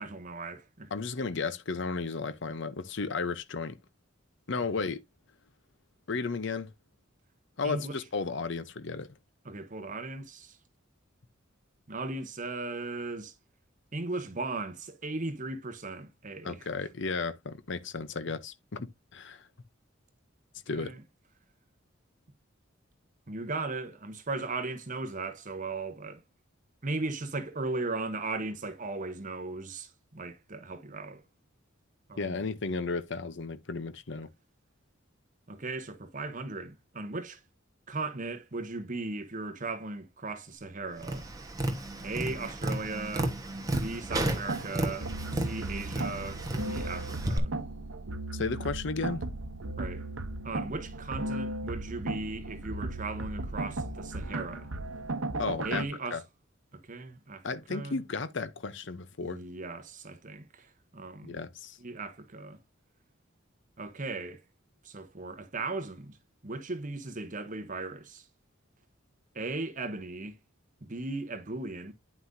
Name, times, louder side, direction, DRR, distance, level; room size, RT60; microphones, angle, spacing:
voice 1, 0.0-0.9 7.6-8.0 9.4-10.6 11.9-13.3 13.9-16.7 20.7-21.0 23.3-26.2 26.8-31.2 32.1-32.4 35.5-37.4 37.9-41.3 42.0-43.3 43.8-47.5 49.8-50.1 50.4-54.7 55.6-56.2 56.7-57.4 57.7-58.0 59.2-61.4 61.8-62.6 63.8-64.4 64.8-66.2 66.4-68.3 69.3-70.4 70.8-71.9, right 3 dB, 40° right, 1.0 m, -37 dB
voice 2, 0.9-3.8 4.5-5.0 6.1-6.7 7.6-9.1 16.4-19.4 20.7-20.9 32.2-34.3 48.3-49.2 55.4-55.8 56.1-56.2 57.4-59.4 61.2-61.8, left 4 dB, 60° left, 0.7 m, -34 dB
Tap, 41.0-47.4, right 1 dB, 15° right, 1.2 m, -33 dB
sound 1, 43.7-55.8, right 2 dB, 75° right, 0.9 m, -36 dB
9.5 x 5.7 x 2.7 m
head